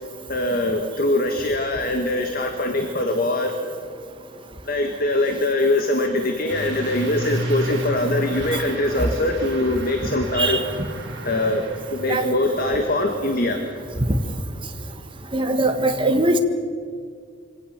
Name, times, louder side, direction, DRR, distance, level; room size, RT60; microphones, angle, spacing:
voice 1, 0.3-3.5 4.7-10.6 11.2-11.6 11.9-13.6, left 1 dB, 50° left, 4 dB, 1.7 m, -22 dB
Truck / Accelerating revving vroom, 6.5-14.4, right 1 dB, 60° right, 4.0 m, -33 dB
voice 2, 15.3-16.4, right 2 dB, 25° right, 6 dB, 1.4 m, -21 dB
25.0 x 17.5 x 7.3 m, 2.1 s
head